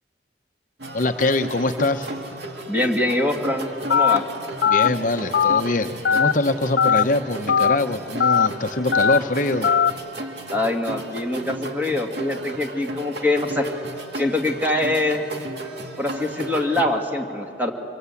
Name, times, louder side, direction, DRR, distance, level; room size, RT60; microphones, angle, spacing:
sound 1, 0.8-16.8, right 1 dB, 70° right, 2.0 m, -35 dB
voice 1, 0.9-2.1 4.6-9.7, left 2 dB, 45° left, 6 dB, 0.9 m, -23 dB
voice 2, 2.7-4.2 10.5-13.7 14.1-15.3 16.0-17.7, left 2 dB, 10° right, 2 dB, 2.1 m, -24 dB
Telephone, 3.9-4.2 4.6-4.9 5.3-5.6 6.1-6.3 6.8-7.0 7.5-7.8 8.2-8.5 8.9-9.2 9.6-9.9, left 7 dB, 70° left, 0.5 m, -18 dB
25.5 x 23.0 x 8.4 m, 2.8 s
head